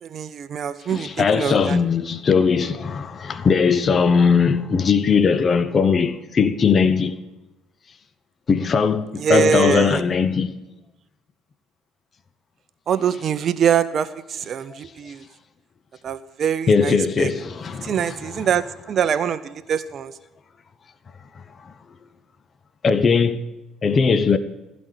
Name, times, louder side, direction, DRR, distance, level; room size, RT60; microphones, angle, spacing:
voice 1, 0.0-1.8 9.2-10.0 12.9-15.2 16.0-17.3 17.8-20.2, right 8 dB, 45° right, 0.5 m, -24 dB
voice 2, 0.9-7.1 8.5-10.5 16.7-18.1 22.8-23.4 23.8-24.4, left 5 dB, 40° left, 0.8 m, -19 dB
15.0 x 5.2 x 8.3 m
figure-of-eight pair, 55°, 0 cm